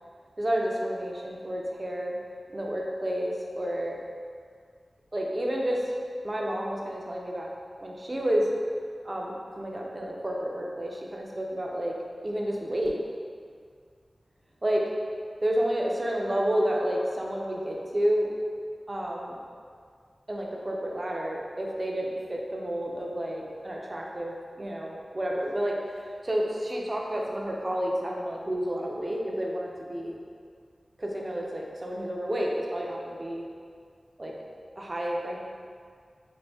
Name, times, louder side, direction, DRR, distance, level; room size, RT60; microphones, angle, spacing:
voice 1, 0.4-2.2 2.5-4.0 5.1-5.8 6.2-7.5 7.8-8.5 9.0-11.9 12.2-13.0 14.6-14.9 15.4-18.3 18.9-19.3 20.3-25.8 26.2-30.2 31.0-33.4 34.2-34.3 34.8-35.4, equal, 30° right, -2 dB, 0.5 m, -30 dB
4.1 x 2.5 x 3.4 m, 2.1 s
wide cardioid pair, 80°, 0 cm